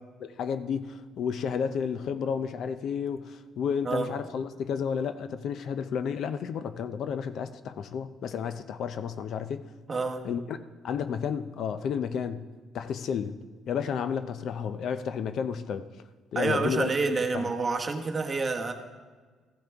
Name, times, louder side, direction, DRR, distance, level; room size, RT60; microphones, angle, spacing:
voice 1, 0.2-9.7 10.2-10.6 10.8-12.4 12.7-13.4 13.7-15.9 16.3-16.9 17.3-17.5, left 7 dB, 60° left, 11 dB, 0.5 m, -31 dB
voice 2, 9.9-10.3 16.3-18.7, right 3 dB, 25° right, 3 dB, 1.0 m, -28 dB
15.0 x 10.5 x 3.5 m, 1.5 s
cardioid pair, 130°, 0 cm